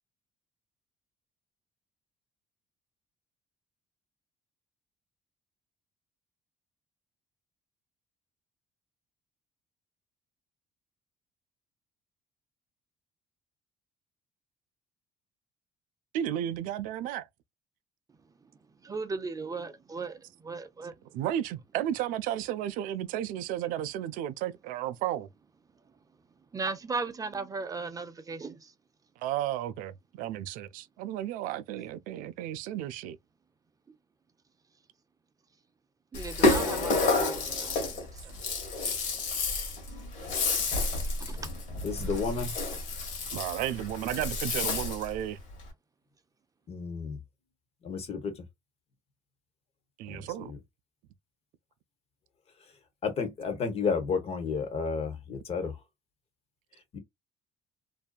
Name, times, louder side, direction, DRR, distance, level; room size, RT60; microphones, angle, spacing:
voice 1, 16.1-17.3 21.1-25.3 29.2-33.2 43.3-45.4 50.0-50.5, right 11 dB, 80° right, 0.4 m, -33 dB
voice 2, 18.8-20.9 26.5-28.7 36.1-38.1 41.2-41.4, right 4 dB, 25° right, 0.5 m, -37 dB
Rattle (instrument), 36.1-45.1, left 3 dB, 65° left, 1.4 m, -30 dB
voice 3, 41.8-42.5 46.7-47.2 47.8-48.3 50.1-50.6 53.0-55.7 56.9-57.0, left 5 dB, 45° left, 1.1 m, -32 dB
2.6 x 2.2 x 2.3 m
supercardioid pair, 85°, 14 cm